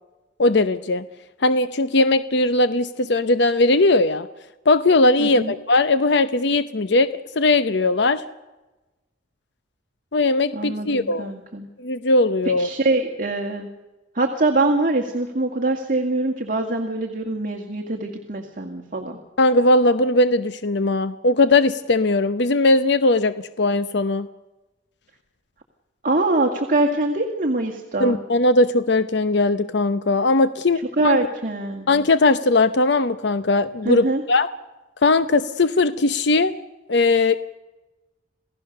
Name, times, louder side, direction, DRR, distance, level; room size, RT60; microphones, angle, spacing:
voice 1, 0.4-1.0 1.4-4.3 4.7-8.2 10.1-11.3 11.8-12.7 19.4-24.3 28.0-31.2 31.9-34.5 35.0-36.5 36.9-37.4, left 2 dB, 60° left, 12 dB, 0.8 m, -19 dB
voice 2, 5.2-5.5 10.5-11.7 12.6-13.7 14.1-19.2 26.0-28.2 31.0-31.9 33.8-34.2, right 2 dB, 45° right, 3 dB, 2.1 m, -23 dB
28.0 x 17.0 x 6.7 m, 1.1 s
head